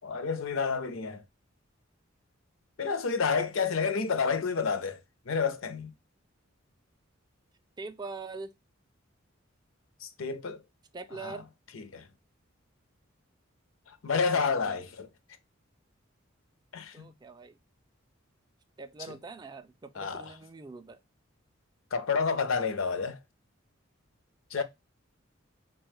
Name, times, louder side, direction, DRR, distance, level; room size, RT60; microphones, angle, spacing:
voice 1, 0.0-1.2 2.8-5.0 5.3-5.9 10.0-10.6 11.2-11.4 11.7-12.1 13.9-15.1 16.7-17.1 19.1-19.2 20.0-20.3 21.9-23.2 24.5-24.6, left 5 dB, 75° left, 0.6 m, -30 dB
voice 2, 7.8-8.5 10.9-11.5 14.3-14.8 16.9-17.6 18.8-21.0 24.6-24.7, right 3 dB, 20° right, 0.3 m, -43 dB
4.3 x 2.2 x 3.1 m
head